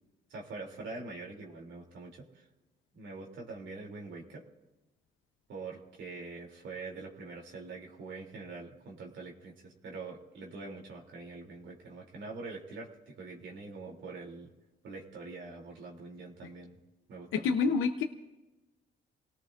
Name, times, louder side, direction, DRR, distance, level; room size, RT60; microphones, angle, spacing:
voice 1, 0.3-2.4 2.9-4.4 5.5-14.5 14.8-16.8 17.1-17.6, right 3 dB, 70° right, -1 dB, 3.2 m, -44 dB
voice 2, 17.3-18.0, left 5 dB, 85° left, 5 dB, 0.9 m, -27 dB
29.0 x 18.5 x 2.6 m, 1.1 s
cardioid pair, 90°, 20 cm